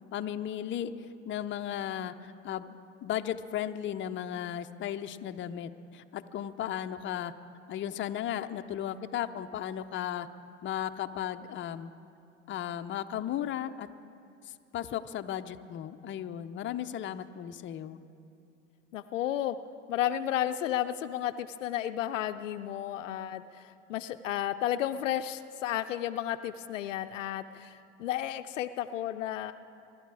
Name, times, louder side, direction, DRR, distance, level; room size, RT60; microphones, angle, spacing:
voice 1, 0.1-0.9 1.3-2.8 3.0-7.3 7.7-10.3 10.6-11.9 12.5-13.9 14.7-18.0, left 10 dB, 30° left, 8 dB, 0.7 m, -35 dB
voice 2, 18.9-19.6 19.9-29.5, left 11 dB, 85° left, 11 dB, 0.6 m, -32 dB
25.0 x 11.5 x 4.8 m, 2.5 s
hypercardioid pair, 85°, 37 cm